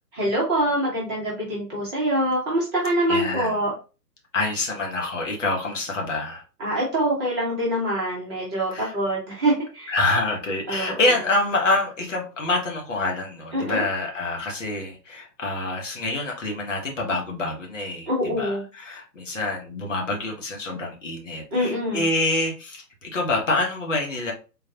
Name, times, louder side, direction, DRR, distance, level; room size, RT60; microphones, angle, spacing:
voice 1, 0.1-3.7 6.6-9.9 10.7-11.0 13.5-13.8 18.1-18.6 21.5-22.0, right 1 dB, 15° right, -5 dB, 0.9 m, -24 dB
voice 2, 3.1-3.6 4.3-6.4 8.7-8.9 9.9-24.3, left 2 dB, 50° left, 0 dB, 1.1 m, -26 dB
3.8 x 2.5 x 2.7 m, 0.33 s
figure-of-eight pair, 130°, 49 cm